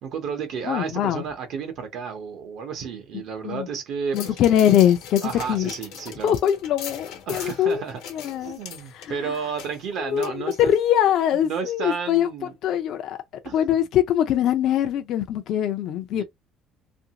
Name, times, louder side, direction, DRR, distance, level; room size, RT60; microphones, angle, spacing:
voice 1, 0.0-4.4 5.2-6.4 7.3-8.0 8.4-10.7 11.3-12.5 13.4-13.6 16.1-16.2, right 6 dB, 55° right, 0.7 m, -32 dB
voice 2, 0.6-1.2 3.4-3.7 4.1-5.7 6.2-7.8 8.1-8.6 8.9-9.3 10.0-10.3 10.7-12.3 12.6-13.2 13.5-16.2, left 10 dB, 55° left, 0.4 m, -22 dB
sound 1, 4.1-11.0 11.4-11.5, left 8 dB, 80° left, 0.9 m, -40 dB
2.8 x 2.6 x 2.8 m
cardioid pair, 160°, 0 cm